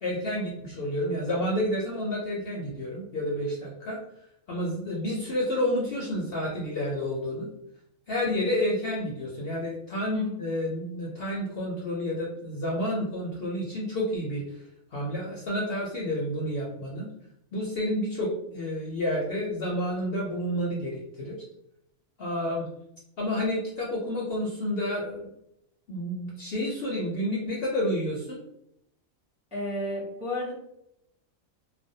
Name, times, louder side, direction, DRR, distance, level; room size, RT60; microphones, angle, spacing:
voice 1, 0.0-4.0 4.5-7.5 8.1-14.4 14.9-17.1 17.5-21.4 22.2-22.6 23.2-25.3 25.9-28.4, left 1 dB, 60° left, -4 dB, 0.6 m, -30 dB
voice 2, 10.1-10.5 29.5-30.5, left 1 dB, 10° right, -5 dB, 0.4 m, -32 dB
2.4 x 2.0 x 2.6 m, 0.79 s
omnidirectional pair, 1.4 m